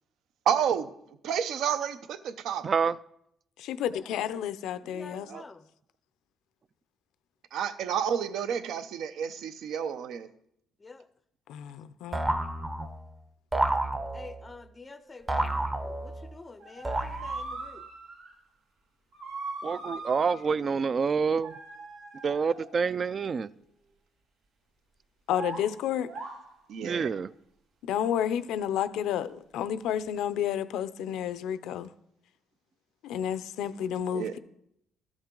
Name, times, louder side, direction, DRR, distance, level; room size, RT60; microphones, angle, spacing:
voice 1, 0.5-0.9 1.2-2.7 5.3-5.4 7.5-10.3 26.7-27.1 34.1-34.3, right 8 dB, 70° right, 0.6 m, -30 dB
voice 2, 2.6-3.0 19.6-21.5 22.2-23.5 26.8-27.3, right 5 dB, 35° right, 0.3 m, -27 dB
voice 3, 3.6-5.3 11.5-12.2 25.3-26.1 27.8-31.9 33.0-34.4, left 9 dB, 80° left, 0.5 m, -31 dB
voice 4, 4.8-5.7 10.8-11.1 14.1-17.9, left 3 dB, 20° left, 0.5 m, -48 dB
sound 1, 12.1-13.1 13.5-14.5 15.3-16.3 16.8-17.6, right 1 dB, 15° right, 0.7 m, -30 dB
sound 2, 14.8-15.6 16.6-18.3 19.1-20.6 21.4-23.0 25.3-26.6, right 3 dB, 90° right, 2.3 m, -41 dB
13.0 x 7.2 x 3.8 m
cardioid pair, 115°, 0 cm